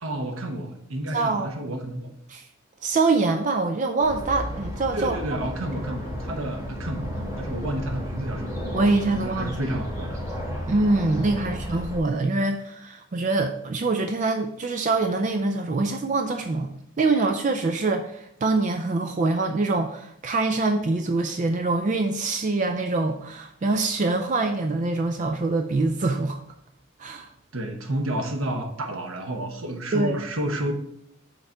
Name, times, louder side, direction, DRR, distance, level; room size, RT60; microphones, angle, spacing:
voice 1, 0.0-2.1 4.9-8.5 9.1-10.2 11.4-11.5 27.5-30.7, right 1 dB, 80° right, 4 dB, 1.1 m, -30 dB
voice 2, 1.1-1.5 2.3-2.4 2.8-5.4 8.7-9.6 10.7-16.7 17.0-26.4 27.0-27.3 29.9-30.2, right 3 dB, 35° right, 6 dB, 0.4 m, -24 dB
sound 1, 4.0-12.0, equal, 15° right, 1.5 m, -33 dB
6.5 x 4.0 x 4.5 m, 0.73 s
head